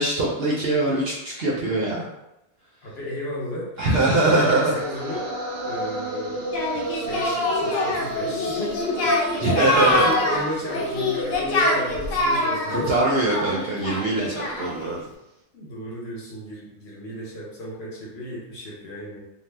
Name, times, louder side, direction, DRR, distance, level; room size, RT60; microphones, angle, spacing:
voice 1, 0.0-2.0 3.8-4.8 7.2-7.4 9.4-10.1 12.7-15.0, right 2 dB, 60° right, -4 dB, 0.7 m, -22 dB
voice 2, 2.8-5.3 5.6-6.6 6.9-9.1 9.4-13.0 15.5-19.2, left 1 dB, 55° left, -4 dB, 0.9 m, -33 dB
sound 1, 4.2-14.3, right 2 dB, 90° right, 1.2 m, -34 dB
Singing, 6.5-14.9, left 2 dB, 85° left, 1.0 m, -25 dB
2.7 x 2.0 x 3.2 m, 0.89 s
omnidirectional pair, 1.4 m